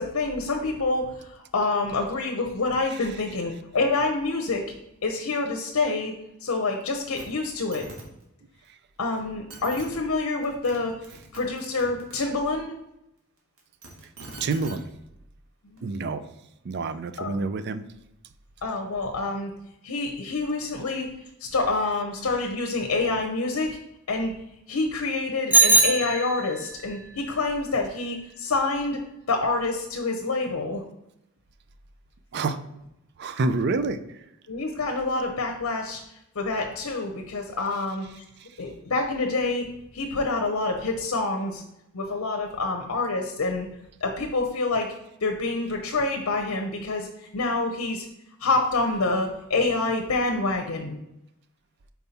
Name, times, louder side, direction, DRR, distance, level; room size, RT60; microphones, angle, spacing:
voice 1, 0.0-4.6 5.0-6.1 6.4-7.8 9.0-11.0 11.3-12.7 15.6-15.8 17.2-17.4 18.6-19.5 19.8-21.1 21.4-23.8 24.1-24.3 24.7-29.0 29.3-30.8 34.5-36.0 36.4-38.2 38.6-39.7 39.9-41.6 41.9-43.7 44.0-44.9 45.2-48.0 48.4-51.0, left 3 dB, 85° left, 2 dB, 0.7 m, -27 dB
sound 1, 7.2-7.3 7.5-8.0 9.1-9.2 9.5-9.8 10.4-10.8 11.0-12.2 13.6-14.7 15.8-15.9, right 2 dB, 80° right, 1.7 m, -42 dB
voice 2, 14.4-14.9 15.8-16.2 16.6-17.8 32.3-32.6 33.2-34.0, right 3 dB, 50° right, 11 dB, 0.4 m, -27 dB
Bicycle bell, 25.5-26.8, right 3 dB, 5° right, 0.6 m, -20 dB
5.4 x 4.5 x 4.1 m, 0.85 s
head